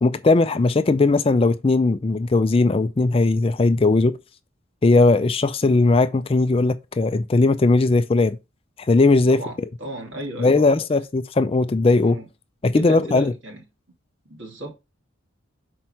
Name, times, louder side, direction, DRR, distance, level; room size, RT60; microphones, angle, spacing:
voice 1, 0.0-4.1 4.8-8.4 8.9-9.4 10.4-12.2 12.6-13.3, left 3 dB, 25° left, 0.4 m, -18 dB
voice 2, 9.8-10.8 12.0-12.3 12.7-13.6 14.3-14.7, right 1 dB, 60° right, 2.5 m, -34 dB
6.0 x 4.5 x 4.2 m
head